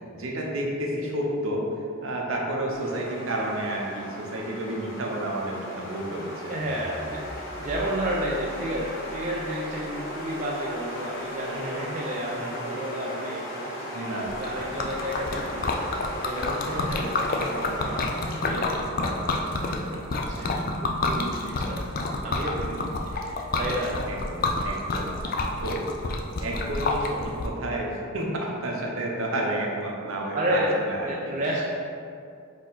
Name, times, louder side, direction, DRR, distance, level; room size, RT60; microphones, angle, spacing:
voice 1, 0.0-1.6 2.0-6.5 11.5-11.8 12.3-12.6 13.9-14.3 24.1-26.0 26.4-31.3, right 1 dB, 65° right, -1 dB, 0.7 m, -31 dB
sound 1, 2.7-20.5, equal, 60° left, 1.3 m, -37 dB
voice 2, 6.5-7.2 7.6-15.8 16.2-18.2 18.5-22.8 23.1-23.9 30.3-30.8 31.1-31.6, right 1 dB, 35° right, -4 dB, 0.4 m, -32 dB
sound 2, 6.6-12.9, equal, 25° left, 0.8 m, -46 dB
Liquid, 14.3-27.5, left 2 dB, 40° left, 0.3 m, -29 dB
4.3 x 3.0 x 3.9 m, 2.4 s
head